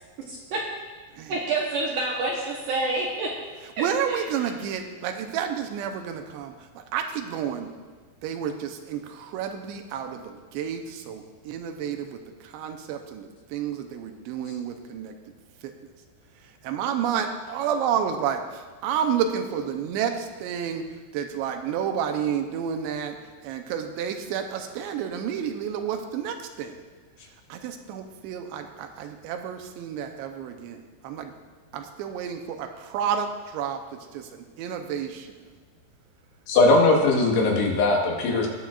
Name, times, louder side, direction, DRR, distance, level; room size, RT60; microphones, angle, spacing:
voice 1, 0.3-0.6 1.3-3.3 3.8-4.5, right 2 dB, 70° right, -3 dB, 2.1 m, -28 dB
voice 2, 3.8-7.7 8.2-15.1 15.6-15.7 16.6-20.8 21.1-23.2 23.4-26.8 27.5-31.3 31.7-33.8 34.1-35.4, right 8 dB, 90° right, 5 dB, 3.0 m, -30 dB
voice 3, 36.5-38.5, left 2 dB, 70° left, 0 dB, 3.3 m, -19 dB
20.0 x 8.8 x 2.5 m, 1.4 s
omnidirectional pair, 5.1 m